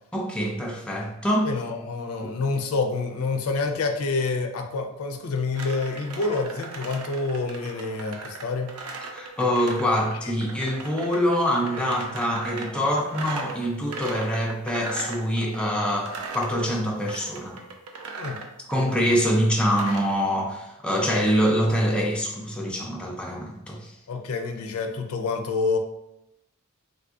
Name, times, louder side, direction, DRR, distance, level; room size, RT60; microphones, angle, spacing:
voice 1, 0.1-1.5 2.2-2.4 9.1-17.6 18.7-23.9, equal, 5° left, -1 dB, 0.4 m, -25 dB
voice 2, 1.4-8.7 10.2-10.3 18.2-18.4 24.1-25.8, left 3 dB, 70° left, 4 dB, 0.4 m, -27 dB
sound 1, 5.5-20.1, right 3 dB, 80° right, 0.5 m, -38 dB
3.6 x 2.5 x 2.4 m, 0.89 s
head